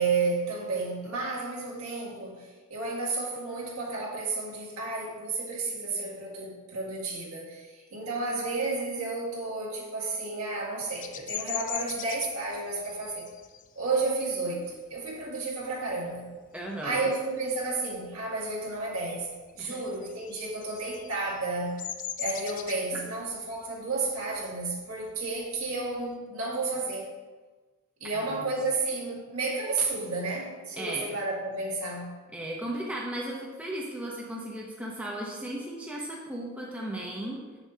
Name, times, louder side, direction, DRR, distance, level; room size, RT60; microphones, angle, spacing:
voice 1, 0.0-13.3 13.8-16.3 16.8-21.8 22.2-27.1 28.0-32.2, right 3 dB, 70° right, -4 dB, 1.9 m, -32 dB
Bird vocalization bird call bird song, 11.0-16.2 16.6-17.0 17.3-18.5 18.8-26.1, left 10 dB, 35° left, 0.3 m, -41 dB
voice 2, 16.5-17.0 19.6-19.8 22.9-23.0 28.3-28.5 30.8-31.0 32.3-37.4, right 1 dB, 5° right, -3 dB, 0.7 m, -36 dB
7.7 x 7.0 x 2.8 m, 1.3 s
head